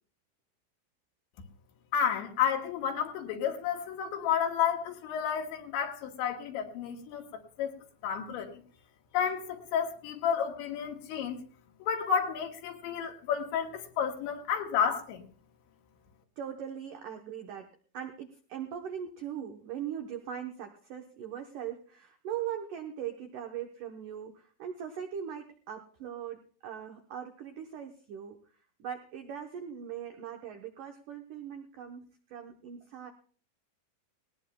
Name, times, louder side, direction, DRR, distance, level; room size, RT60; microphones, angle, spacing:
voice 1, 1.9-7.3 7.6-7.8 8.0-8.6 9.1-11.4 11.8-15.3, left 8 dB, 80° left, 2 dB, 3.5 m, -31 dB
voice 2, 16.4-17.7 17.9-28.4 28.8-32.0 32.3-33.1, right 9 dB, 85° right, 4 dB, 1.8 m, -40 dB
19.0 x 19.0 x 2.2 m, 0.42 s
omnidirectional pair, 5.1 m